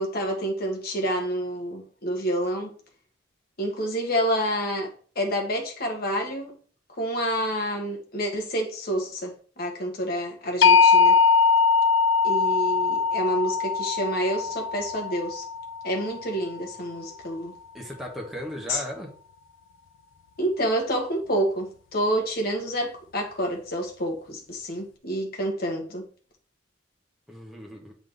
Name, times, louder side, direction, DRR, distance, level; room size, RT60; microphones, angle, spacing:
voice 1, 0.0-2.7 3.6-6.5 6.9-11.2 12.2-15.4 15.8-17.5 18.7-18.8 20.4-26.0, equal, 55° left, 1.6 m, -28 dB
sound 1, 10.6-16.6, left 5 dB, 85° left, 0.4 m, -21 dB
voice 2, 17.7-19.1 27.3-27.9, equal, ahead, 1.4 m, -36 dB
7.4 x 4.0 x 3.5 m
head